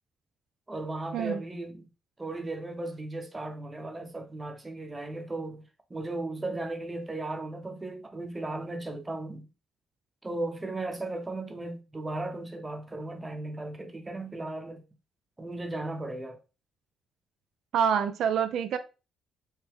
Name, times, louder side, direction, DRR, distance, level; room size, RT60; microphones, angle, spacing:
voice 1, 0.7-1.9 2.2-9.5 10.2-14.8 15.4-16.4, right 2 dB, 20° right, 0.8 m, -36 dB
voice 2, 17.7-18.8, right 8 dB, 75° right, 0.4 m, -26 dB
4.7 x 2.1 x 3.4 m
cardioid pair, 90°, 0 cm